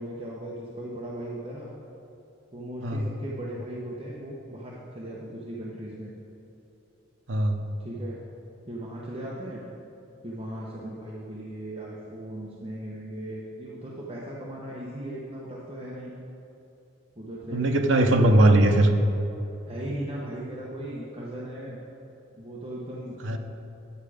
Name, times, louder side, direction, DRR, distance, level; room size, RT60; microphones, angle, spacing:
voice 1, 0.0-1.7 2.5-6.1 7.8-8.2 8.7-9.6 10.2-16.1 17.2-17.7 19.7-21.8 22.4-23.4, right 1 dB, 30° right, -6 dB, 1.0 m, -37 dB
voice 2, 7.3-7.6 17.5-18.9 23.2-23.4, right 1 dB, 75° right, 3 dB, 0.7 m, -20 dB
11.0 x 7.5 x 5.0 m, 3.0 s
head